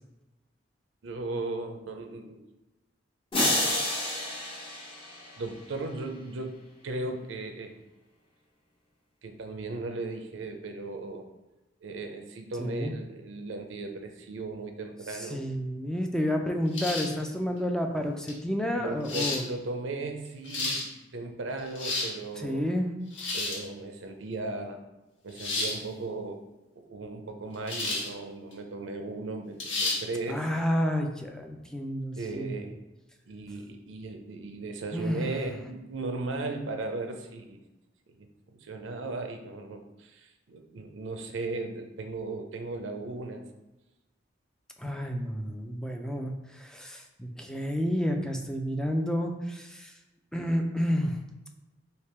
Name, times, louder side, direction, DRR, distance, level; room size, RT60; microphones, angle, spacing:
voice 1, 1.0-2.4 3.4-3.7 5.4-6.6 6.8-7.8 9.2-11.3 11.8-15.5 18.8-22.7 23.3-24.8 25.2-26.4 26.8-30.5 32.2-32.8 33.3-37.6 38.1-43.5, right 3 dB, 85° right, 6 dB, 0.5 m, -37 dB
sound 1, 3.3-5.7, left 1 dB, 30° left, 0.9 m, -29 dB
voice 2, 12.6-12.9 15.3-19.5 22.4-22.9 30.3-32.6 34.9-35.4 44.8-49.9 50.3-51.2, equal, 5° left, 2 dB, 0.3 m, -30 dB
sound 2, 16.7-17.2 18.3-18.4 19.0-19.4 20.3-20.8 21.6-22.1 23.1-23.6 25.4-25.8 27.7-28.1 28.5-28.6 29.6-30.0, left 3 dB, 75° left, 1.1 m, -31 dB
3.4 x 2.8 x 4.3 m, 1.0 s
head